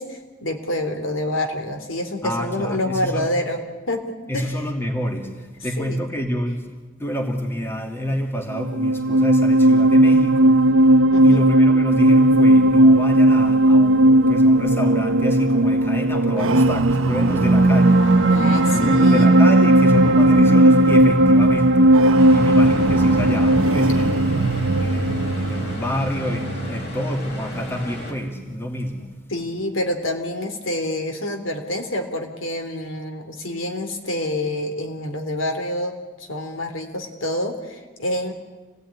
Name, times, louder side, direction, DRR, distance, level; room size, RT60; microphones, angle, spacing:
voice 1, 0.0-4.5 5.8-6.0 11.1-11.4 18.3-19.3 29.3-38.3, left 1 dB, 90° left, 5 dB, 3.4 m, -27 dB
voice 2, 2.2-3.3 4.3-6.7 7.0-10.9 11.2-18.1 18.7-24.3 24.8-29.1, equal, 10° left, 3 dB, 2.6 m, -27 dB
sound 1, 8.5-27.0, right 1 dB, 90° right, 0.9 m, -17 dB
sound 2, 17.0-28.0, right 2 dB, 60° right, 1.5 m, -21 dB
sound 3, 22.2-28.1, left 1 dB, 55° left, 5.1 m, -36 dB
27.5 x 18.0 x 9.8 m, 1.3 s
head